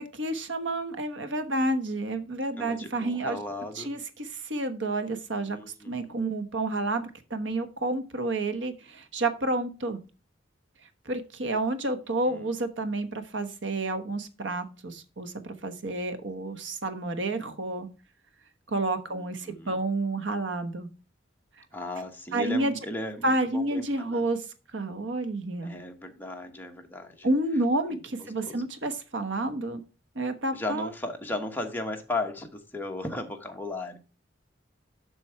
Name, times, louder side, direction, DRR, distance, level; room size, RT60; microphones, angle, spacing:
voice 1, 0.0-3.4 3.7-5.6 5.8-10.0 11.0-17.9 18.7-20.9 22.3-22.7 23.2-24.4 24.7-25.8 27.2-29.8 30.1-30.9, right 2 dB, 85° right, 1.1 m, -30 dB
voice 2, 2.6-3.9 5.4-6.1 12.3-12.4 19.1-19.8 21.7-24.2 25.6-27.3 27.9-28.0 28.4-28.7 30.5-34.0, left 2 dB, 10° left, 1.2 m, -36 dB
7.3 x 6.2 x 4.5 m
head